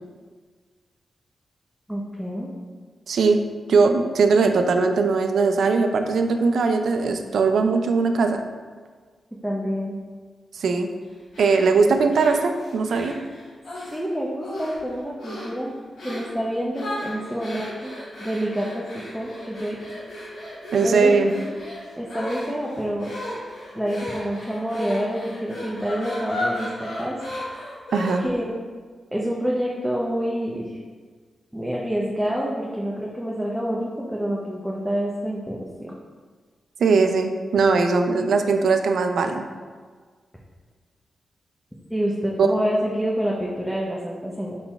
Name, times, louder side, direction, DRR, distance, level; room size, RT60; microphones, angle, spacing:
voice 1, 1.9-2.5 9.4-10.0 13.9-15.7 16.0-17.9 18.2-19.8 20.8-21.6 22.0-23.1 23.7-27.2 28.2-28.5 29.1-30.8 31.5-35.9 41.9-44.6, equal, ahead, -4 dB, 0.6 m, -27 dB
voice 2, 3.1-3.4 3.7-8.4 10.5-10.9 11.4-13.2 20.7-21.3 27.9-28.2 36.8-39.5 42.4-42.5, right 4 dB, 80° right, 6 dB, 0.3 m, -20 dB
sound 1, 11.3-14.0 14.4-14.9 15.2-15.6 16.0-16.3 16.7-28.4, left 1 dB, 80° left, 1.1 m, -35 dB
4.1 x 4.0 x 2.3 m, 1.5 s
cardioid pair, 55°, 0 cm